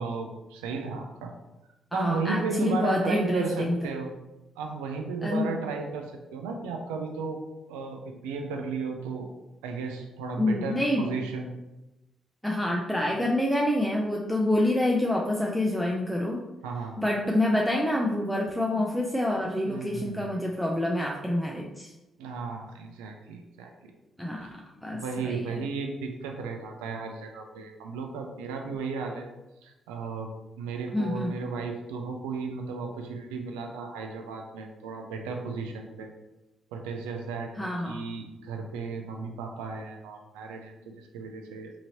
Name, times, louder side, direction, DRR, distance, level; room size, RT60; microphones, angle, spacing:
voice 1, 0.0-1.3 1.9-4.1 4.6-7.4 7.7-9.3 9.6-11.5 16.6-17.0 19.7-20.3 22.2-23.7 24.4-24.5 24.9-29.3 29.6-30.3 30.6-36.1 36.7-37.5 37.9-41.7, right 4 dB, 90° right, 3 dB, 0.3 m, -34 dB
voice 2, 1.9-3.7 5.2-5.6 10.4-11.0 12.4-16.4 17.0-21.9 24.2-25.4 30.9-31.3 37.6-38.0, left 1 dB, ahead, -2 dB, 0.5 m, -27 dB
2.8 x 2.8 x 2.7 m, 0.99 s
hypercardioid pair, 50°, 0 cm